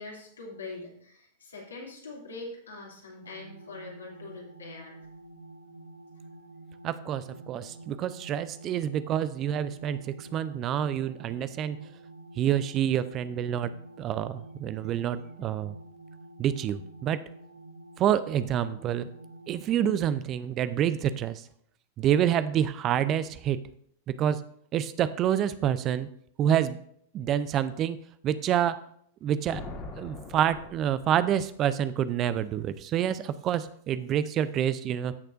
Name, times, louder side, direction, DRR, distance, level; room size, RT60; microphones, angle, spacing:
voice 1, 0.0-5.1, left 3 dB, 80° left, -3 dB, 2.9 m, -43 dB
sound 1, 3.2-19.7, right 2 dB, 90° right, 0.9 m, -49 dB
voice 2, 6.8-11.9 12.4-13.7 14.0-15.8 16.4-17.2 18.0-19.1 19.5-21.5 22.0-23.6 24.1-24.4 24.7-26.1 26.4-26.8 27.1-28.0 28.2-28.8 29.2-29.6 30.0-35.1, right 10 dB, 35° right, 14 dB, 0.5 m, -27 dB
Thunder, 29.4-31.7, left 3 dB, 35° left, 1.8 m, -42 dB
14.5 x 6.6 x 2.6 m, 0.66 s
figure-of-eight pair, 95°, 0 cm